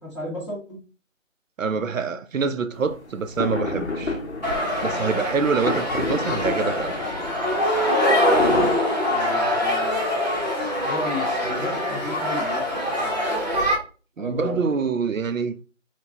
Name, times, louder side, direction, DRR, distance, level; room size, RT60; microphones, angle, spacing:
voice 1, 0.0-0.8 8.2-8.7 9.1-10.2 10.6-13.7 14.2-14.6, left 1 dB, 20° left, 1.2 m, -34 dB
voice 2, 1.6-4.2 4.8-6.9 14.2-15.6, right 5 dB, 80° right, 0.6 m, -25 dB
sound 1, 2.7-8.7, left 2 dB, 60° left, 0.8 m, -31 dB
sound 2, 4.4-13.8, left 1 dB, 30° right, 0.8 m, -23 dB
4.1 x 2.2 x 2.8 m
figure-of-eight pair, 180°, 39 cm